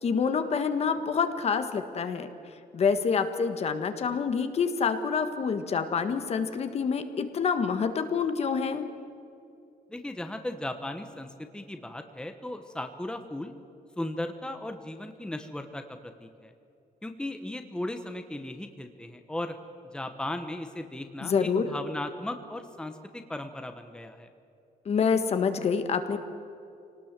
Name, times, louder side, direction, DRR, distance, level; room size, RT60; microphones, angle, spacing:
voice 1, 0.0-2.3 2.7-8.9 21.2-21.6 24.8-26.2, left 6 dB, 45° left, 8 dB, 1.6 m, -27 dB
voice 2, 9.9-13.5 14.0-16.5 17.0-19.5 19.9-24.3, left 1 dB, 5° left, 6 dB, 1.2 m, -37 dB
25.5 x 19.0 x 7.6 m, 2.6 s
cardioid pair, 140°, 15 cm